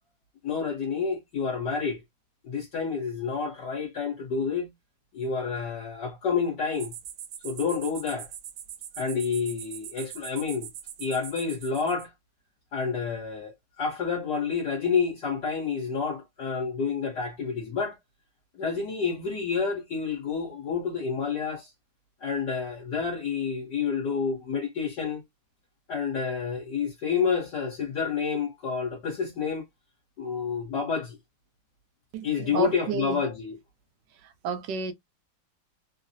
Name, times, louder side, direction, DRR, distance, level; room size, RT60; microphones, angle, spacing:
voice 1, 0.4-2.0 2.4-4.7 5.1-6.9 7.4-8.3 9.0-10.7 11.0-12.1 12.7-18.0 18.5-21.7 22.2-25.2 25.9-29.6 30.2-31.2 32.2-33.5, left 5 dB, 65° left, 1.5 m, -29 dB
sound 1, 6.7-12.1, right 10 dB, 90° right, 1.4 m, -42 dB
voice 2, 32.1-33.2 34.1-34.9, right 5 dB, 75° right, 1.2 m, -32 dB
3.7 x 2.0 x 2.6 m
omnidirectional pair, 2.1 m